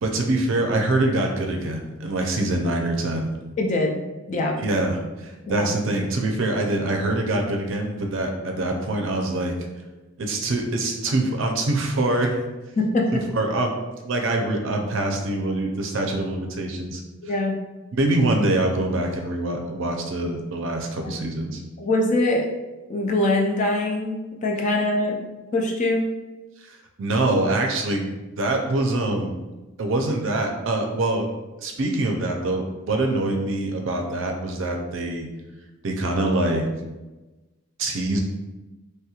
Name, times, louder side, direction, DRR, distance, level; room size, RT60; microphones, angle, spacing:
voice 1, 0.0-3.3 4.6-9.5 10.2-12.4 13.1-13.7 14.0-17.0 17.3-17.4 17.9-21.6 26.6-28.1 28.4-29.3 29.8-31.3 31.6-35.3 35.8-36.7 37.8-38.2, right 2 dB, 65° right, 2 dB, 0.5 m, -24 dB
voice 2, 3.6-4.6 5.4-5.7 12.8-13.2 17.2-17.6 21.8-22.5 22.9-25.2 25.5-26.1, left 2 dB, 35° left, 0 dB, 0.3 m, -23 dB
3.1 x 2.9 x 2.3 m, 1.1 s
head